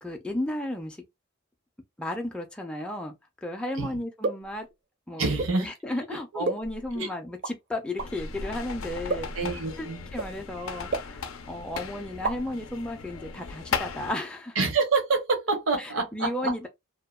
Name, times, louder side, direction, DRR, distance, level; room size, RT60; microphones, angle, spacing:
voice 1, 0.0-1.0 2.0-3.1 3.4-4.7 5.1-5.3 5.6-9.3 9.8-9.9 10.1-14.6 15.8-16.7, left 1 dB, 5° left, 0.3 m, -34 dB
sound 1, 4.2-4.5 5.4-5.6 6.4-7.0 7.4-7.5 8.0-8.1 9.1-9.4 10.2-10.3 10.9-11.5 11.7-11.8 12.1-12.6, right 3 dB, 55° right, 0.5 m, -31 dB
voice 2, 5.2-5.7 6.1-6.4 6.9-7.1 9.3-10.1 14.5-16.7, right 4 dB, 90° right, 0.8 m, -27 dB
sound 2, 8.0-14.1, left 5 dB, 85° left, 0.4 m, -36 dB
2.7 x 2.1 x 2.2 m
head